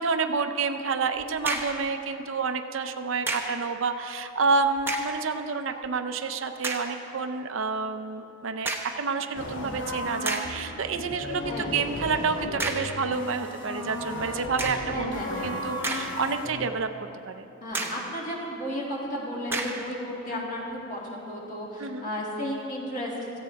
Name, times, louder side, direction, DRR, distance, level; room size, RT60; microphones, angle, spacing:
voice 1, 0.0-17.5 20.3-20.5 21.8-22.1, right 4 dB, 65° right, 8 dB, 0.6 m, -29 dB
sound 1, 1.2-1.9 3.3-3.6 4.8-5.2 5.8-5.9 6.6-7.0 8.7-9.0 9.7-9.8 10.3-10.6 12.6-13.0 14.6-15.0 15.6-16.4 16.8-16.9 17.7-18.1 19.5-19.9, right 2 dB, 10° right, 0.8 m, -32 dB
sound 2, 9.3-16.7, left 2 dB, 60° left, 1.0 m, -35 dB
voice 2, 14.9-15.5 17.6-23.4, equal, 40° left, -4 dB, 2.4 m, -34 dB
17.0 x 14.5 x 3.5 m, 2.9 s
head